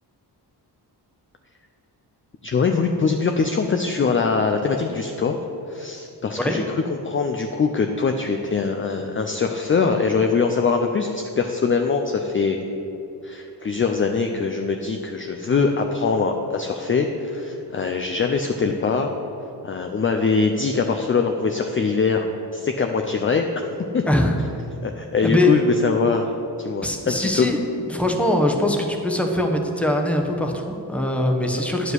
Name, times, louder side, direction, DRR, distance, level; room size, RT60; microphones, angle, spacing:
voice 1, 2.4-5.4 5.7-12.6 13.2-19.1 19.6-23.7 23.9-24.0 24.8-26.3 26.6-27.5, left 5 dB, 30° left, 4 dB, 0.5 m, -22 dB
voice 2, 25.2-25.5 26.8-27.6 27.9-31.9, left 1 dB, 5° left, 2 dB, 1.0 m, -22 dB
9.8 x 4.9 x 8.0 m, 2.9 s
wide cardioid pair, 135°, 41 cm